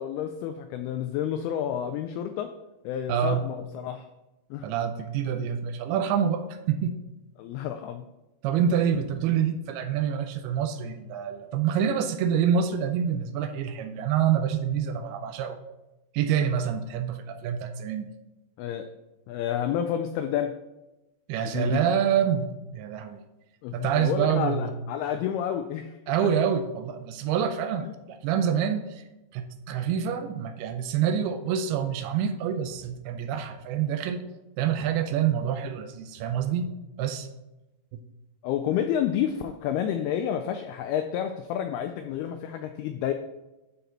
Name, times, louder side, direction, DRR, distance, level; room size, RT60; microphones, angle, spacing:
voice 1, 0.0-2.5 2.8-4.1 4.5-4.7 7.4-8.0 8.6-8.7 18.6-18.9 19.3-20.6 21.4-21.8 23.6-26.0 26.2-26.3 27.8-27.9 38.4-43.1, left 9 dB, 85° left, 6 dB, 2.3 m, -30 dB
voice 2, 3.1-3.5 4.6-7.0 8.4-15.6 16.1-18.1 21.3-23.2 23.7-24.7 26.1-29.0 29.3-34.2 34.6-36.7 37.0-37.3 37.9-38.0, right 8 dB, 80° right, 8 dB, 2.4 m, -27 dB
11.5 x 4.1 x 4.0 m, 1.0 s
omnidirectional pair, 4.9 m